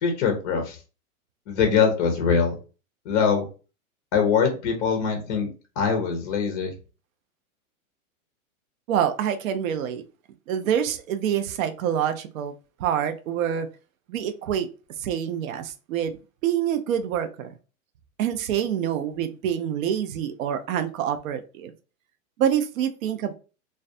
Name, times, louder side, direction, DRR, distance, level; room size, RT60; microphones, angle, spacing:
voice 1, 0.0-0.8 1.5-2.5 3.1-3.5 4.1-5.5 5.8-6.7, left 6 dB, 30° left, 0.4 m, -22 dB
voice 2, 8.9-10.0 10.5-12.5 12.8-13.7 14.1-14.7 15.0-16.1 16.4-17.5 18.2-21.7 22.4-23.3, right 9 dB, 70° right, 0.5 m, -26 dB
2.3 x 2.2 x 2.5 m
hypercardioid pair, 140°, 43 cm